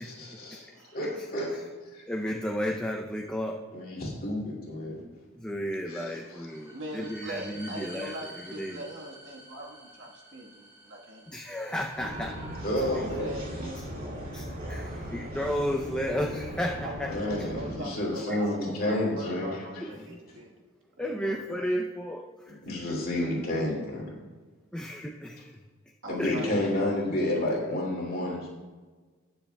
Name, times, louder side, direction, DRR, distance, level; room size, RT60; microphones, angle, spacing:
voice 1, 0.0-0.7 0.9-1.6 1.9-2.0 3.7-5.0 5.9-6.2 12.6-13.3 17.1-19.8 22.6-24.1 26.1-28.5, left 1 dB, 40° left, -3 dB, 2.5 m, -30 dB
voice 2, 2.1-3.6 5.4-8.8 11.3-12.4 14.3-14.8 15.1-17.1 18.3-18.4 19.8-20.2 21.0-22.6 24.7-25.6 26.2-26.4, equal, 5° left, 0 dB, 0.5 m, -33 dB
sound 1, 6.0-12.7, right 1 dB, 15° right, 3.0 m, -49 dB
voice 3, 6.6-11.5 12.9-13.8 16.8-20.6 21.0-21.6 26.0-27.0, right 1 dB, 60° right, -1 dB, 1.4 m, -41 dB
sound 2, 11.9-17.7, equal, 40° right, 2.4 m, -38 dB
19.5 x 7.1 x 2.3 m, 1.4 s
head